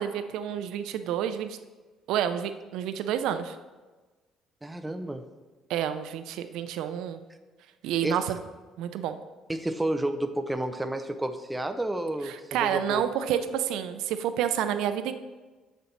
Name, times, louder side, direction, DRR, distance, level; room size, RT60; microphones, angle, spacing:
voice 1, 0.0-1.6 2.1-3.5 5.7-7.2 7.8-8.4 8.8-9.2 12.3-15.1, right 10 dB, 80° right, 10 dB, 0.5 m, -29 dB
voice 2, 4.6-5.2 8.0-8.2 9.5-13.1, right 1 dB, 10° right, 7 dB, 0.5 m, -30 dB
6.9 x 6.8 x 4.5 m, 1.3 s
cardioid pair, 120°, 0 cm